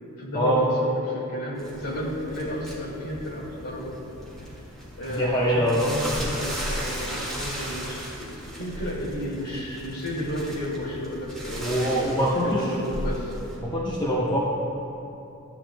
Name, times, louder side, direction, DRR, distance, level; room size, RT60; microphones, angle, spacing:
voice 1, 0.2-4.0 5.0-13.3, equal, 85° left, -5 dB, 2.3 m, -32 dB
sound 1, 1.6-13.6, equal, 5° left, 1.9 m, -36 dB
voice 2, 5.1-5.9 11.6-12.7 13.6-14.5, equal, 20° left, -6 dB, 0.8 m, -24 dB
13.5 x 10.5 x 2.2 m, 2.9 s
head